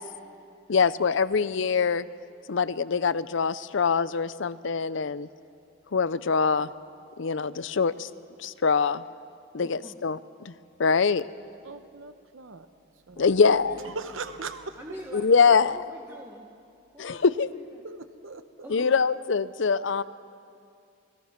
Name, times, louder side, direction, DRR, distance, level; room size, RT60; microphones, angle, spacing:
voice 1, 0.7-2.1 2.5-5.3 5.9-6.7 7.2-8.1 8.4-9.0 9.5-10.5 10.8-11.3 13.2-13.8 15.1-15.8 17.0-17.5 18.7-20.0, left 5 dB, 65° left, 16 dB, 0.6 m, -24 dB
voice 2, 9.6-10.0 13.1-14.4 14.7-16.5 16.9-17.8 18.6-19.1 19.8-20.0, equal, 15° right, -1 dB, 1.5 m, -45 dB
voice 3, 11.6-12.7 13.1-13.4 13.8-14.8 17.1-17.2 17.8-18.7, right 4 dB, 75° right, 10 dB, 0.9 m, -40 dB
28.0 x 20.5 x 5.9 m, 2.4 s
head